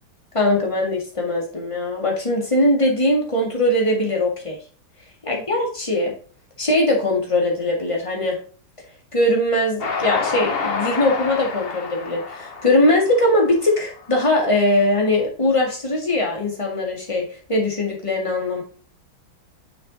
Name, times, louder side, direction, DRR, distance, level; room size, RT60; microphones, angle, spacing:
voice 1, 0.3-4.6 5.2-6.1 6.6-8.4 9.1-18.6, left 1 dB, 15° left, 0 dB, 1.7 m, -21 dB
Train, 9.8-14.2, left 4 dB, 45° left, 0.8 m, -28 dB
6.6 x 6.1 x 4.0 m, 0.41 s
omnidirectional pair, 2.3 m